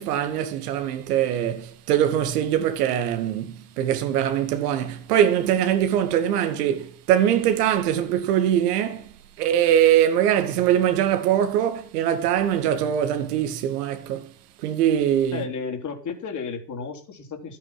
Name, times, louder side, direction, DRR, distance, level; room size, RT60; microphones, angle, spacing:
voice 1, 0.0-9.1 9.4-14.3 14.6-15.4, right 10 dB, 70° right, 2.2 m, -22 dB
voice 2, 15.3-17.6, left 5 dB, 35° left, 3.7 m, -33 dB
12.5 x 8.9 x 5.9 m
hypercardioid pair, 80°, 48 cm